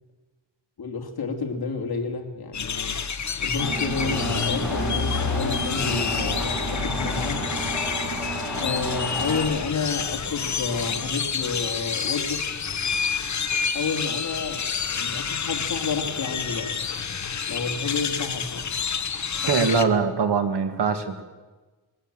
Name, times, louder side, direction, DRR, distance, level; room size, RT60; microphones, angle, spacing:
voice 1, 0.8-3.0 3.4-7.4 8.6-12.5 13.7-14.7 14.9-16.7 17.5-18.7 19.4-19.7 20.0-20.1, left 4 dB, 60° left, 3 dB, 2.9 m, -30 dB
sound 1, 2.5-19.8, left 6 dB, 40° left, 1.1 m, -28 dB
Engine, 3.6-9.4, right 1 dB, ahead, 6.4 m, -31 dB
voice 2, 19.5-21.2, right 5 dB, 70° right, 8 dB, 1.9 m, -22 dB
21.0 x 16.5 x 7.7 m, 1.3 s
wide cardioid pair, 135°, 42 cm